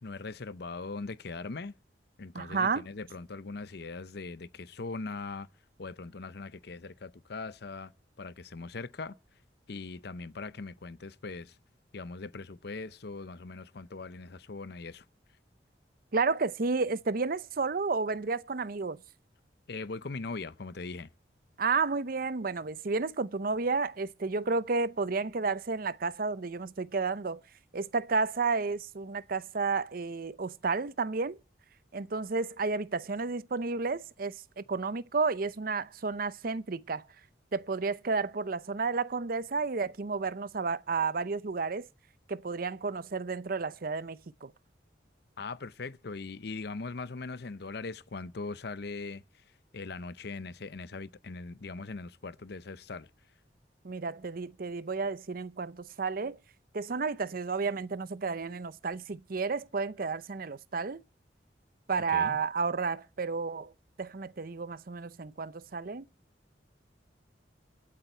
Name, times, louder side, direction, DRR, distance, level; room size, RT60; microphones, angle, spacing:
voice 1, 0.0-1.7 2.2-5.5 5.8-7.9 8.2-9.1 9.7-11.6 11.9-15.0 19.7-21.1 45.4-49.2 49.7-53.1 62.1-62.4, left 3 dB, 60° left, 0.7 m, -40 dB
voice 2, 2.3-2.8 16.1-19.0 21.6-27.4 27.7-31.4 31.9-37.1 37.5-41.9 42.3-44.5 53.8-56.4 56.7-61.0 61.9-63.7 64.0-66.1, right 4 dB, 50° right, 0.7 m, -31 dB
25.5 x 8.6 x 4.5 m
head